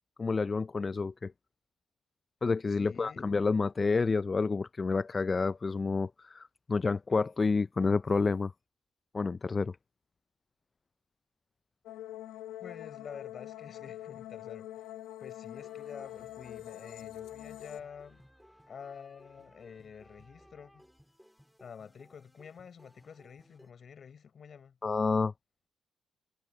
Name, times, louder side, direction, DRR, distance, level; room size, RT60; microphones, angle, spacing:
voice 1, 0.2-1.3 2.4-8.5 9.1-9.8 24.8-25.3, left 4 dB, 30° left, 0.3 m, -29 dB
voice 2, 2.8-3.3 12.6-14.9 15.2-18.2 18.7-20.8 21.6-24.8, left 7 dB, 50° left, 4.5 m, -48 dB
sound 1, 11.9-17.8, left 13 dB, 90° left, 0.8 m, -44 dB
sound 2, 15.5-23.7, equal, ahead, 3.6 m, -60 dB
cardioid pair, 90°, 0 cm